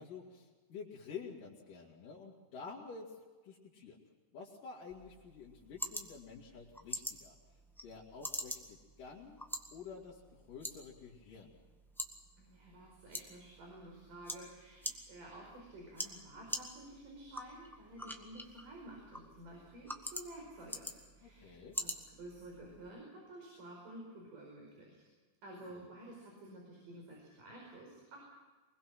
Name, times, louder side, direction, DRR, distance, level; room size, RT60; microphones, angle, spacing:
voice 1, 0.0-3.2 3.4-4.0 4.3-7.4 7.8-9.4 9.7-11.5 21.2-21.8 25.5-25.9, left 5 dB, 85° left, -5 dB, 4.2 m, -50 dB
sound 1, 4.9-22.9, equal, 5° left, 0.4 m, -46 dB
voice 2, 12.4-21.9 22.2-25.0 25.4-28.2, right 1 dB, 90° right, -1 dB, 6.7 m, -52 dB
24.5 x 22.0 x 6.0 m, 1.3 s
omnidirectional pair, 3.7 m